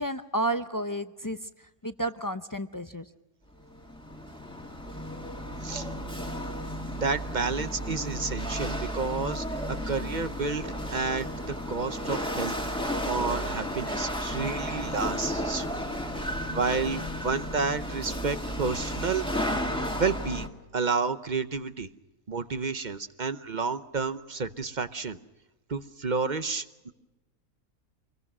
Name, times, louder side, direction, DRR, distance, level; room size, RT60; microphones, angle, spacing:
voice 1, 0.0-3.1, right 1 dB, 30° left, 9 dB, 0.3 m, -32 dB
Chatter / Hiss / Rattle, 3.6-20.5, equal, 5° left, 2.0 m, -33 dB
voice 2, 7.0-12.6 13.0-15.7 16.5-19.2 20.0-20.5 20.7-21.9 22.3-25.2 25.7-26.9, right 4 dB, 40° right, 12 dB, 0.8 m, -30 dB
27.0 x 22.0 x 6.1 m, 1.1 s
omnidirectional pair, 1.6 m